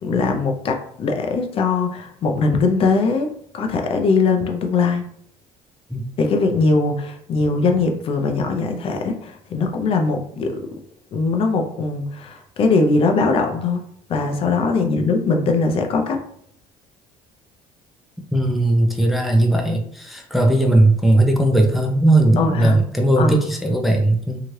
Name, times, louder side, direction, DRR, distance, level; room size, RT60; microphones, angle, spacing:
voice 1, 0.0-3.3 3.5-5.1 6.2-10.6 11.1-13.8 14.1-16.2 22.4-22.8 23.2-23.3, left 4 dB, 45° left, 4 dB, 0.5 m, -20 dB
voice 2, 18.3-24.4, right 1 dB, ahead, 1 dB, 0.4 m, -17 dB
2.8 x 2.4 x 3.0 m, 0.66 s
cardioid pair, 110°, 13 cm